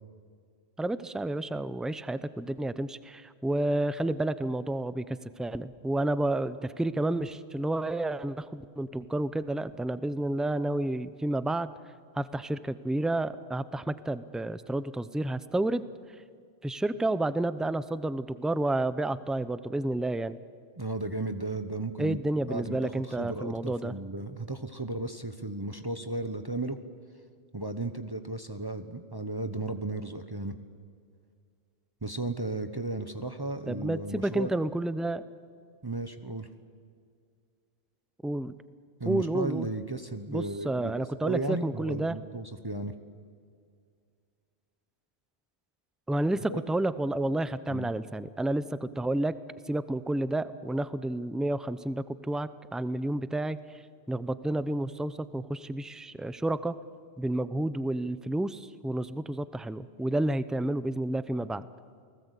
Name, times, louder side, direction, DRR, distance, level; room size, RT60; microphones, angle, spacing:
voice 1, 0.8-11.7 12.1-15.9 16.6-20.4 22.0-23.9 33.7-35.2 38.2-38.5 39.1-39.7 40.3-42.2 46.1-49.3 49.7-53.8 54.1-56.7 57.2-61.6, right 1 dB, ahead, 14 dB, 0.5 m, -30 dB
voice 2, 20.8-26.8 27.5-30.6 32.0-34.5 35.8-36.5 39.0-42.9 46.5-46.6 47.7-47.9, right 2 dB, 20° right, 8 dB, 1.1 m, -35 dB
29.5 x 19.5 x 8.3 m, 2.2 s
omnidirectional pair, 1.1 m